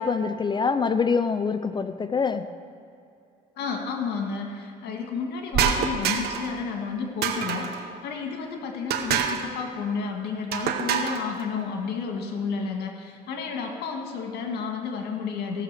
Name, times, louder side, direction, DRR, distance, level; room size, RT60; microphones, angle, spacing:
voice 1, 0.0-2.5, left 5 dB, 25° left, 11 dB, 0.5 m, -25 dB
voice 2, 3.6-15.6, left 5 dB, 75° left, 3 dB, 1.8 m, -31 dB
sound 1, 5.5-6.5 7.2-7.8 8.9-9.5 10.5-11.2, right 7 dB, 70° right, 1.1 m, -26 dB
16.0 x 6.6 x 6.8 m, 2.6 s
cardioid pair, 110°, 17 cm